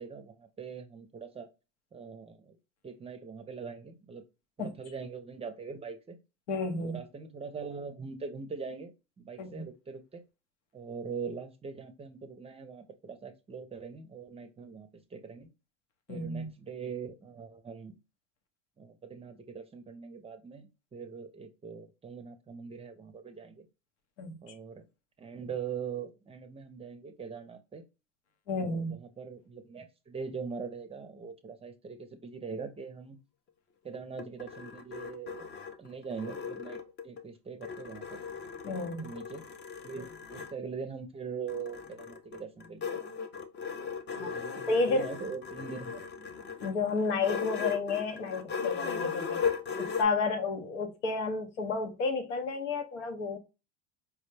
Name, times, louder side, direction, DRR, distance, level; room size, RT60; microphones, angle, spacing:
voice 1, 0.0-1.5 1.9-2.6 2.8-4.2 4.6-6.2 6.8-10.2 10.7-15.5 16.1-17.9 18.8-23.7 24.4-24.9 25.2-27.8 28.5-33.2 33.8-35.5 35.8-38.2 39.0-39.5 39.8-43.2 44.1-46.5, right 5 dB, 15° right, 0.5 m, -42 dB
voice 2, 6.5-7.0 9.4-9.7 16.1-16.5 24.2-24.5 28.5-29.0 38.6-39.1 44.2-44.3 44.7-45.1 46.6-49.4 49.8-53.4, left 3 dB, 90° left, 0.9 m, -31 dB
sound 1, 33.9-37.2 37.6-40.6 41.5-50.0, left 6 dB, 30° left, 0.5 m, -37 dB
4.7 x 2.1 x 3.2 m
supercardioid pair, 105°, 35 cm